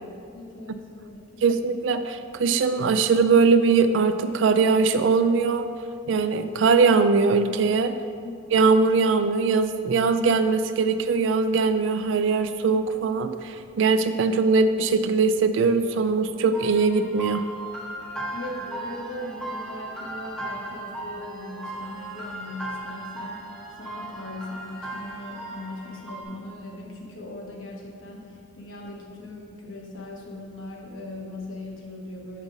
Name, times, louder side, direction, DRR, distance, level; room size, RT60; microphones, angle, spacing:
voice 1, 0.3-1.9 8.2-8.3 18.3-32.4, left 2 dB, 90° left, -2 dB, 1.2 m, -39 dB
voice 2, 1.4-5.7 6.1-7.9 8.5-17.5, right 4 dB, 75° right, 10 dB, 0.4 m, -21 dB
sound 1, 16.5-26.2, right 2 dB, 5° left, 1.2 m, -37 dB
6.1 x 5.3 x 3.9 m, 2.3 s
head